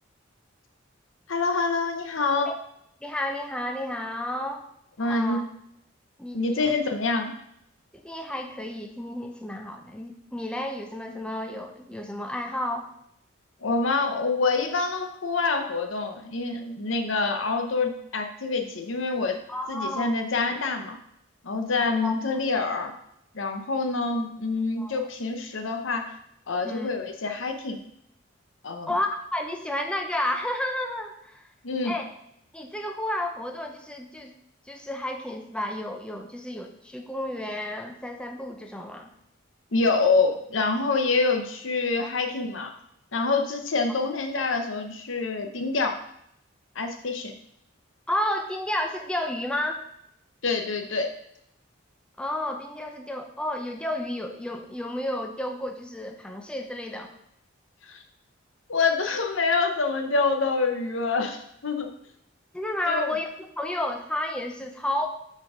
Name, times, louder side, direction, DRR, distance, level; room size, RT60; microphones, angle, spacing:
voice 1, 1.3-2.5 5.0-5.4 6.3-7.3 13.6-19.4 19.7-21.0 21.4-22.9 23.3-26.1 26.5-27.8 28.6-28.9 31.6-31.9 39.7-42.7 43.1-46.0 46.7-47.3 50.4-51.1 57.8-58.0 58.7-61.9 62.9-63.1, left 3 dB, 80° left, 6 dB, 0.8 m, -26 dB
voice 2, 3.0-4.7 5.0-5.4 6.2-6.7 7.9-12.9 19.5-20.1 22.0-22.2 24.8-25.0 26.6-26.9 28.9-31.5 31.8-32.1 32.5-34.3 34.7-39.1 42.0-42.1 48.1-49.8 52.2-57.1 62.5-65.1, left 1 dB, 5° left, 3 dB, 0.5 m, -31 dB
6.1 x 4.4 x 4.9 m, 0.75 s
head